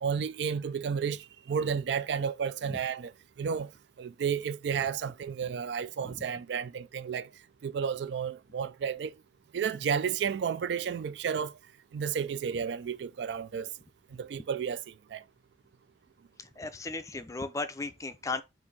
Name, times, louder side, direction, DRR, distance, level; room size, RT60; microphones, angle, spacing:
voice 1, 0.0-3.1 3.4-3.7 4.0-7.3 7.6-9.1 9.5-11.5 11.9-13.7 14.1-15.2, right 7 dB, 70° right, 0.3 m, -32 dB
voice 2, 16.4-18.4, left 3 dB, 20° left, 0.4 m, -36 dB
4.5 x 2.5 x 4.0 m
head